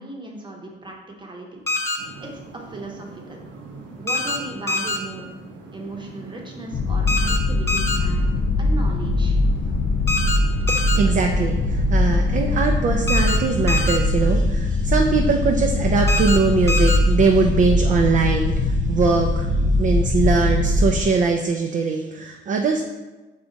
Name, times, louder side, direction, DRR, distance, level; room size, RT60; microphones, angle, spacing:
voice 1, 0.0-3.4 4.0-5.3 5.7-9.3, right 1 dB, 25° right, 1 dB, 0.9 m, -37 dB
sound 1, 1.7-2.0 4.1-4.4 4.7-5.0 7.1-7.4 7.7-8.0 10.1-10.4 10.7-11.0 13.1-13.4 13.7-14.0 16.1-16.4 16.7-17.0, left 2 dB, 15° left, 0.6 m, -24 dB
sound 2, 2.0-14.3, right 3 dB, 70° right, 0.7 m, -41 dB
sound 3, 6.7-21.1, left 2 dB, 60° left, 0.5 m, -21 dB
voice 2, 10.7-22.8, right 4 dB, 40° right, 3 dB, 0.4 m, -21 dB
5.0 x 2.3 x 3.9 m, 1.2 s
cardioid pair, 90°, 20 cm